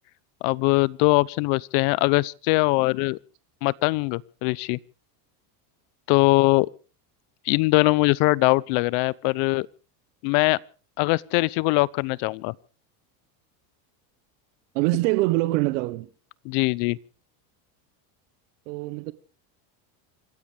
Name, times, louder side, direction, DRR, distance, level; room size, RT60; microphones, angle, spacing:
voice 1, 0.4-3.2 3.6-4.8 6.1-6.7 7.5-9.7 10.2-10.6 11.0-12.5 16.4-17.0, left 24 dB, 55° left, 0.8 m, -21 dB
voice 2, 14.7-16.1 18.7-19.1, right 20 dB, 75° right, 1.3 m, -24 dB
27.0 x 15.0 x 3.4 m
supercardioid pair, 145°, 47 cm